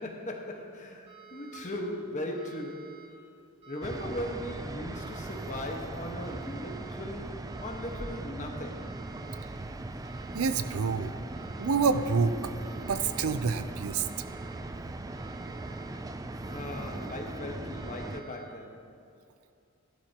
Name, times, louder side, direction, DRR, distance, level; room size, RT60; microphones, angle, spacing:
voice 1, 0.0-3.1 3.7-9.0 16.5-18.9, left 1 dB, 35° left, 1 dB, 1.3 m, -38 dB
sound 1, 1.1-1.8 2.3-3.1 3.6-4.3 4.9-5.6 6.2-6.9 7.5-8.2 8.7-9.5 10.0-10.8 11.3-12.0 12.6-13.3 13.9-14.6 15.1-15.9 16.4-17.2 17.7-18.4, right 9 dB, 35° right, 3.2 m, -52 dB
sound 2, 3.8-18.2, right 2 dB, 15° right, 0.4 m, -39 dB
voice 2, 10.3-11.2 11.6-12.5 12.8-14.1, right 5 dB, 80° right, 11 dB, 0.5 m, -28 dB
16.0 x 11.5 x 2.9 m, 2.5 s
head